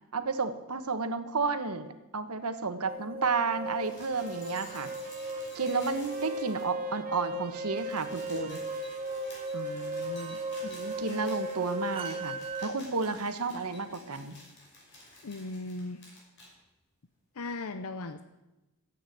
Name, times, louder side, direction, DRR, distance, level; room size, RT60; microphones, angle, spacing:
voice 1, 0.1-4.9 5.5-8.6 10.6-14.4, right 4 dB, 85° right, 9 dB, 1.3 m, -32 dB
sound 1, 2.9-12.7, right 2 dB, 25° right, 0.7 m, -36 dB
sound 2, 3.6-6.9 7.2-7.3 7.5-16.5 17.5-17.6, left 1 dB, 55° left, 5.8 m, -52 dB
sound 3, 4.0-12.4, right 4 dB, 40° right, 1.6 m, -52 dB
voice 2, 9.5-10.4 15.2-16.0 17.4-18.2, left 2 dB, 80° left, 10 dB, 0.7 m, -38 dB
14.0 x 8.7 x 9.3 m, 1.0 s
head